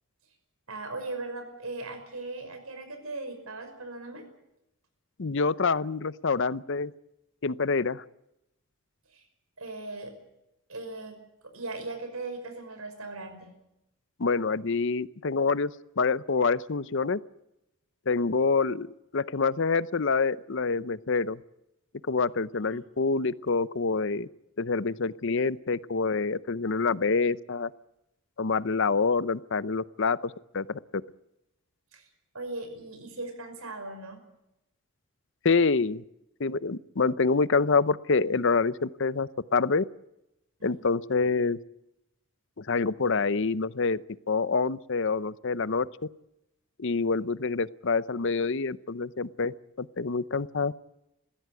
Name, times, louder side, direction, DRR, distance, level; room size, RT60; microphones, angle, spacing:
voice 1, 0.7-4.2 9.1-9.2 9.6-10.1 10.7-11.2 11.5-13.5 18.3-18.5 22.7-22.8 31.9-32.1 32.3-34.2 40.6-40.7, right 2 dB, 80° right, 7 dB, 5.7 m, -38 dB
voice 2, 5.2-6.9 7.4-8.0 14.2-17.2 18.1-21.4 22.1-24.3 24.6-27.7 28.4-30.8 35.4-36.0 36.4-39.8 40.6-41.6 42.6-44.0 44.3-45.9 46.8-50.7, left 4 dB, 55° left, 17 dB, 0.7 m, -26 dB
21.5 x 16.0 x 9.2 m, 0.87 s
head